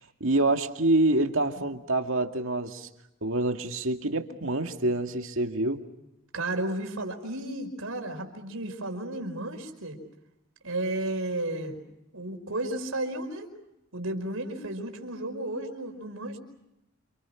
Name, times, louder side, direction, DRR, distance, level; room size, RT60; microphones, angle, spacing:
voice 1, 0.2-2.9 3.2-5.8, right 2 dB, 70° right, 4 dB, 2.3 m, -26 dB
voice 2, 6.3-10.0 10.6-11.8 12.1-13.5 13.9-16.4, right 1 dB, 85° right, 5 dB, 4.9 m, -33 dB
30.0 x 28.0 x 5.9 m, 0.86 s
head